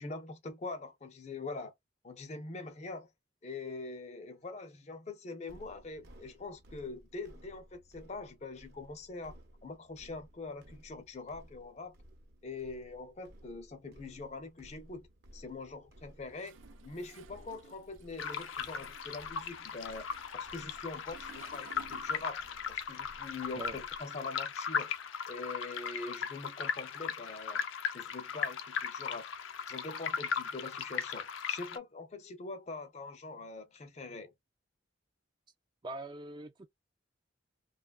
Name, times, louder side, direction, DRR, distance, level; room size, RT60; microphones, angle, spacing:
voice 1, 0.0-1.7 2.0-3.1 3.4-11.9 12.4-15.1 15.3-20.1 20.3-24.9 25.3-27.7 27.9-29.3 29.7-34.3, left 3 dB, 35° left, 0.5 m, -43 dB
sound 1, 5.5-24.0, equal, 55° right, 0.7 m, -58 dB
Toilet flush, 16.3-22.8 23.0-24.6, right 6 dB, 90° right, 0.5 m, -58 dB
sound 2, 18.2-31.8, left 6 dB, 85° left, 0.5 m, -38 dB
voice 2, 35.8-36.7, right 2 dB, 25° right, 0.3 m, -42 dB
2.8 x 2.2 x 2.3 m
head